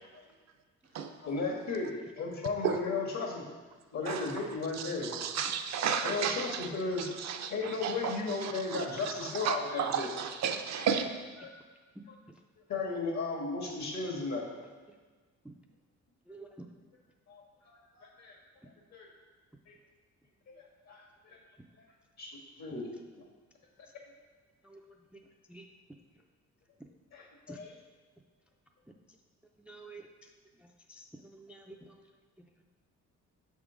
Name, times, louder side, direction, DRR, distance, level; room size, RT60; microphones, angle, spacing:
voice 1, 1.2-3.4 3.9-5.1 6.0-7.1 7.5-10.2 10.8-10.9 11.4-11.5 12.1-12.2 12.7-14.5 17.3-18.4 18.9-19.1 19.7-19.8 20.9-21.4 22.2-22.9 27.1-27.7, left 3 dB, 65° left, -1 dB, 1.6 m, -35 dB
voice 2, 4.8-6.6 7.2-8.2 8.4-8.9 9.4-11.1, right 7 dB, 60° right, 6 dB, 0.6 m, -33 dB
voice 3, 29.7-30.0 30.9-31.0 31.3-31.7, right 3 dB, 5° right, 2 dB, 0.4 m, -48 dB
6.2 x 3.6 x 5.0 m, 1.4 s
cardioid pair, 90°, 30 cm